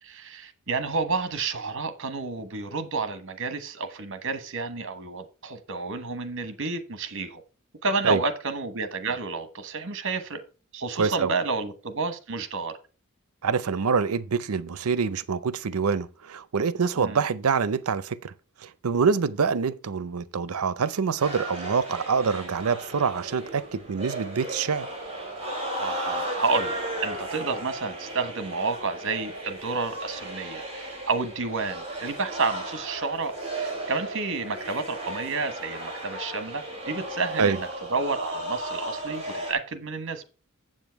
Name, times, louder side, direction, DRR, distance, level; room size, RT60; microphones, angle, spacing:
voice 1, 0.0-7.4 7.8-10.4 10.7-12.8 17.0-17.2 25.7-40.2, right 4 dB, 60° right, 1.2 m, -30 dB
voice 2, 11.0-11.3 13.4-18.3 18.6-24.9 37.4-37.6, right 5 dB, 85° right, 0.6 m, -26 dB
sound 1, 21.2-39.5, right 1 dB, 30° right, 3.1 m, -35 dB
7.6 x 7.3 x 4.6 m
head